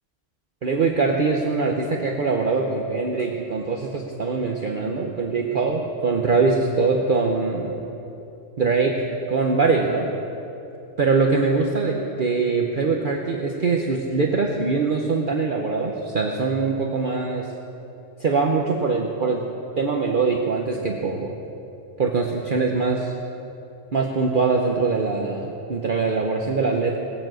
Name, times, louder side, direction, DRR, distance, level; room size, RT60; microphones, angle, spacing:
voice 1, 0.6-7.8 8.6-10.1 11.0-17.5 18.2-19.4 19.8-21.4 22.0-23.1 23.9-27.0, right 4 dB, 45° right, 1 dB, 1.0 m, -23 dB
18.5 x 7.3 x 7.6 m, 2.9 s
omnidirectional pair, 1.3 m